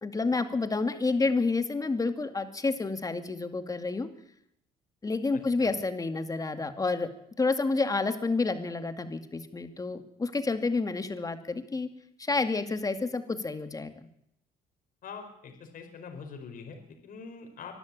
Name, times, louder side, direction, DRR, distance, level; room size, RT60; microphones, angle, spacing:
voice 1, 0.0-4.1 5.0-7.1 7.4-11.9 12.2-13.9, left 3 dB, 20° left, 8 dB, 2.3 m, -29 dB
voice 2, 15.0-17.8, left 5 dB, 55° left, 4 dB, 4.9 m, -44 dB
24.0 x 13.0 x 8.7 m, 0.76 s
cardioid pair, 110°, 17 cm